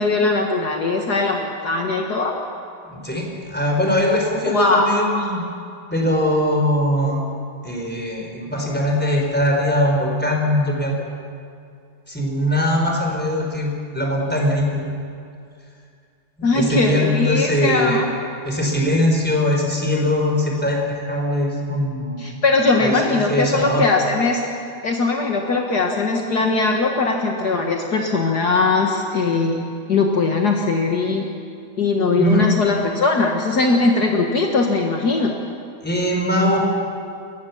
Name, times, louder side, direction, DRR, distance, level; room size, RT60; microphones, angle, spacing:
voice 1, 0.0-2.4 4.4-4.9 16.4-18.1 22.2-24.4 24.8-31.3 31.8-35.3, left 3 dB, 60° left, 1 dB, 2.0 m, -20 dB
voice 2, 2.9-5.4 5.9-7.2 7.6-11.0 12.1-14.8 16.4-18.1 18.4-22.3 22.8-23.8 32.2-32.5 35.8-36.6, left 1 dB, 5° left, -1 dB, 4.2 m, -21 dB
30.0 x 15.5 x 7.2 m, 2.4 s
omnidirectional pair, 2.0 m